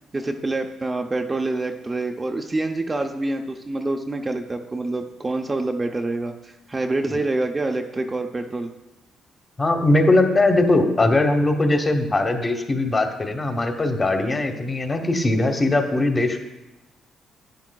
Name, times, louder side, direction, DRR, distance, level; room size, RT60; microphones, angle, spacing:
voice 1, 0.1-8.7, right 2 dB, 25° right, 4 dB, 0.6 m, -26 dB
voice 2, 9.6-16.4, left 2 dB, 30° left, 4 dB, 1.1 m, -20 dB
10.5 x 9.3 x 2.3 m, 1.0 s
cardioid pair, 90°, 0 cm